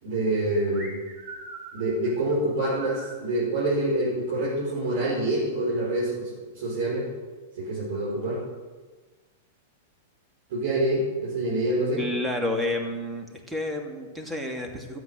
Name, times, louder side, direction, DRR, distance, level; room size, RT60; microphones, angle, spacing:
voice 1, 0.0-0.9 1.7-7.1 7.5-8.4 10.5-12.0, right 1 dB, 65° right, -6 dB, 5.1 m, -26 dB
sound 1, 0.7-3.2, right 3 dB, 35° right, 4.9 m, -42 dB
voice 2, 12.0-15.0, left 1 dB, 10° right, 2 dB, 2.6 m, -30 dB
13.0 x 8.3 x 7.9 m, 1.3 s
hypercardioid pair, 110°, 0 cm